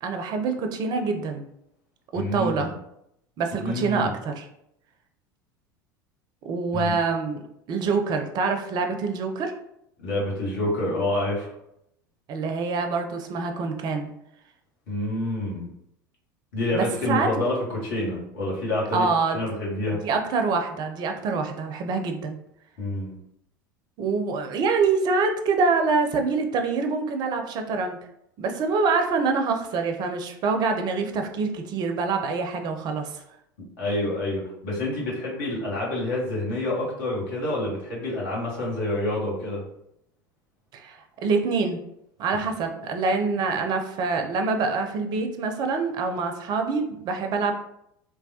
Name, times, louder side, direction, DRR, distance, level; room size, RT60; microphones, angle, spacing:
voice 1, 0.0-1.4 2.1-2.7 3.4-4.5 6.5-7.4 7.7-9.5 12.3-14.1 16.7-17.3 18.9-19.4 19.9-22.4 24.0-28.0 28.4-33.2 40.7-41.8 42.2-47.5, right 4 dB, 40° right, 5 dB, 0.4 m, -25 dB
voice 2, 2.1-2.7 3.6-4.1 6.7-6.9 10.0-11.5 14.9-15.7 16.5-19.1 19.3-20.0 22.8-23.1 33.8-39.6, left 1 dB, 65° left, -4 dB, 1.2 m, -28 dB
3.1 x 2.2 x 2.7 m, 0.77 s
figure-of-eight pair, 75°, 11 cm